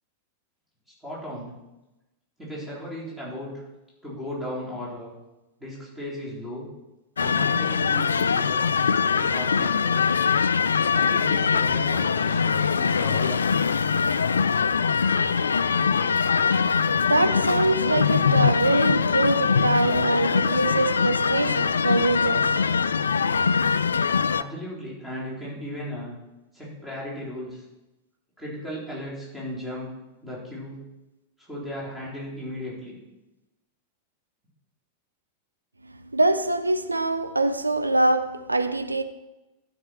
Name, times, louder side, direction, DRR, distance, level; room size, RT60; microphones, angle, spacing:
voice 1, 1.0-1.5 2.4-3.6 4.0-5.1 5.6-6.7 7.2-10.0 10.9-13.6 24.3-26.2 26.5-27.6 28.4-29.9 30.2-30.8 31.4-33.0, equal, 10° right, 4.0 m, -36 dB
sound 1, 7.2-24.4, left 6 dB, 70° left, 0.3 m, -22 dB
voice 2, 16.5-22.7 36.1-39.0, right 2 dB, 85° right, 0.7 m, -24 dB
12.5 x 5.9 x 4.5 m
figure-of-eight pair, 90°, 0 cm